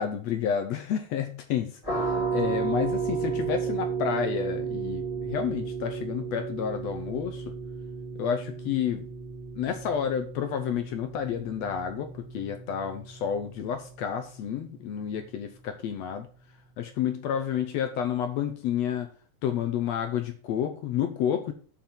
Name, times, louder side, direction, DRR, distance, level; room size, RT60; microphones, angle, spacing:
voice 1, 0.0-7.5 8.2-9.1 9.6-16.3 16.8-19.1 19.4-21.5, left 8 dB, 70° left, 7 dB, 1.8 m, -30 dB
sound 1, 1.8-13.3, right 5 dB, 10° left, 2.4 m, -33 dB
7.1 x 5.7 x 7.1 m, 0.41 s
omnidirectional pair, 3.7 m